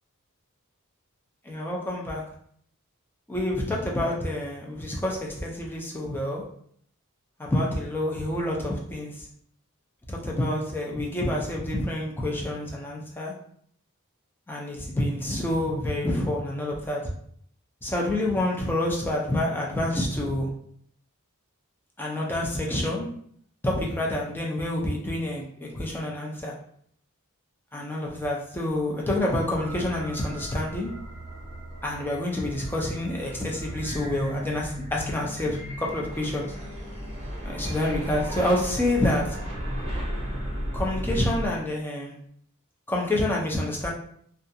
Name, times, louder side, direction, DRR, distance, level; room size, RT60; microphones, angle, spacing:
voice 1, 1.5-2.2 3.3-6.4 7.4-9.3 10.1-13.3 14.5-17.0 17.8-20.5 22.0-23.1 23.6-26.5 27.7-30.9 31.8-36.5 37.4-39.4 40.7-42.2 42.9-43.9, left 1 dB, 10° left, -2 dB, 0.5 m, -28 dB
sound 1, 29.5-41.5, equal, 30° right, 0.8 m, -35 dB
2.4 x 2.3 x 2.7 m, 0.65 s
head